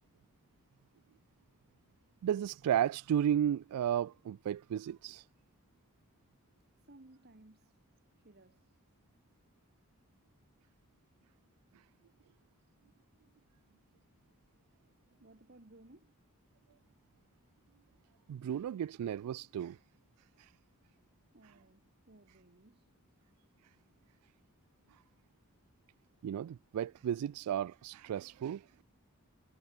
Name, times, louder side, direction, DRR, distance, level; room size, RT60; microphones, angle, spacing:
voice 1, 2.2-5.2 18.3-19.8 20.4-20.5 26.2-28.8, right 9 dB, 90° right, 0.3 m, -34 dB
voice 2, 6.8-7.8 8.2-8.8 10.3-10.4 13.7-13.8 15.2-16.2 21.3-22.9, right 2 dB, 45° right, 1.4 m, -60 dB
head